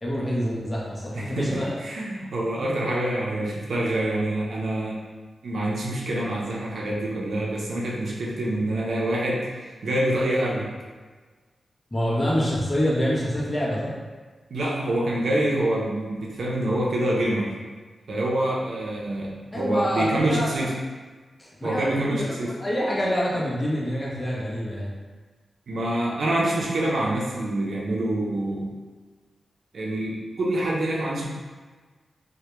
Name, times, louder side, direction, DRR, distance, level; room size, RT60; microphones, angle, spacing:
voice 1, 0.0-1.7 11.9-14.0 19.5-20.6 21.4-24.9, equal, 20° left, -6 dB, 0.6 m, -26 dB
voice 2, 1.1-5.0 5.4-10.7 14.5-17.6 18.1-20.7 21.6-22.5 25.7-28.7 29.7-31.3, right 1 dB, 75° right, -4 dB, 0.5 m, -26 dB
2.1 x 2.1 x 2.9 m, 1.4 s
wide cardioid pair, 115°, 0 cm